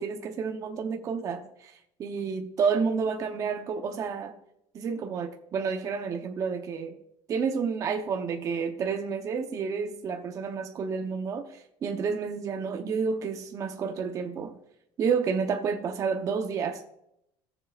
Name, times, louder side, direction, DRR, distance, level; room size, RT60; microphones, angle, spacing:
voice 1, 0.0-4.3 4.7-7.0 7.3-14.6 15.0-16.8, right 5 dB, 35° right, 0.8 m, -30 dB
17.5 x 7.4 x 2.5 m
cardioid pair, 155°, 10 cm